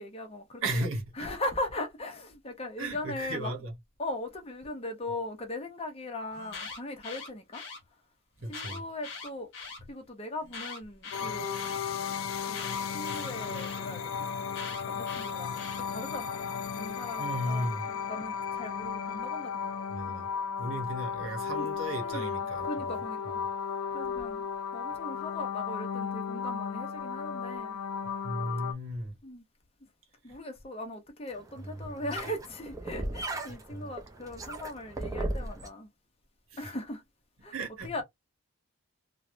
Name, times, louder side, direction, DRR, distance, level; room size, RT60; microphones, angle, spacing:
voice 1, 0.0-0.9 1.2-3.5 4.0-7.6 8.5-9.5 9.9-11.8 12.5-14.1 14.9-20.0 21.5-21.7 22.0-23.4 23.9-24.5 24.7-27.8 29.2-29.4 30.2-35.9 36.6-37.0 37.4-37.6 37.8-38.0, left 1 dB, 25° left, 0.7 m, -39 dB
voice 2, 0.6-1.3 2.8-3.7 8.4-8.8 17.2-17.9 19.9-20.3 20.6-22.9 28.2-29.1 31.8-31.9 33.7-33.9 36.5-36.7 37.5-38.0, right 1 dB, 60° right, 1.0 m, -35 dB
Alarm, 6.3-7.8 8.5-9.8 10.5-11.8 12.5-13.8 14.5-15.8, left 4 dB, 55° left, 1.3 m, -41 dB
sound 1, 11.1-28.7, left 7 dB, 70° left, 0.4 m, -35 dB
sound 2, 31.3-35.7, right 1 dB, 15° right, 0.4 m, -37 dB
3.2 x 2.1 x 2.5 m
head